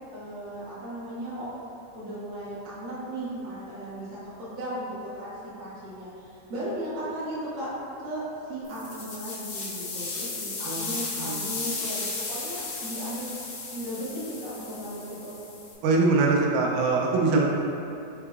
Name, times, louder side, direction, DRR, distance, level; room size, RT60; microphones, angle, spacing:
voice 1, 0.1-1.5 1.9-4.1 4.4-7.7 8.0-8.2 8.5-13.3 13.7-15.4, right 1 dB, 50° right, -11 dB, 1.7 m, -36 dB
sound 1, 8.6-15.7, left 3 dB, 80° left, 2.5 m, -35 dB
voice 2, 10.7-11.6 15.8-17.5, right 3 dB, 90° right, -1 dB, 2.1 m, -23 dB
5.6 x 3.8 x 2.4 m, 2.8 s
omnidirectional pair, 3.5 m